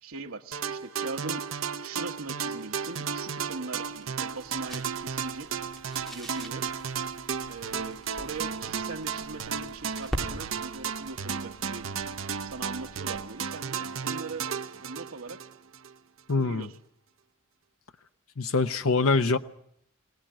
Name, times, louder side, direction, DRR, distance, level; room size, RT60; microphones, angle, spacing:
voice 1, 0.0-1.4 1.8-5.5 6.0-6.7 7.5-11.9 12.4-14.5 14.8-15.4 16.3-16.8, right 3 dB, 85° right, 4 dB, 1.3 m, -40 dB
sound 1, 0.5-15.9, right 6 dB, 70° right, 0.9 m, -34 dB
sound 2, 3.0-13.4, equal, ahead, 3.0 m, -44 dB
voice 2, 16.3-16.7 18.4-19.4, left 3 dB, 80° left, 10 dB, 0.8 m, -24 dB
23.5 x 18.0 x 9.0 m, 0.75 s
head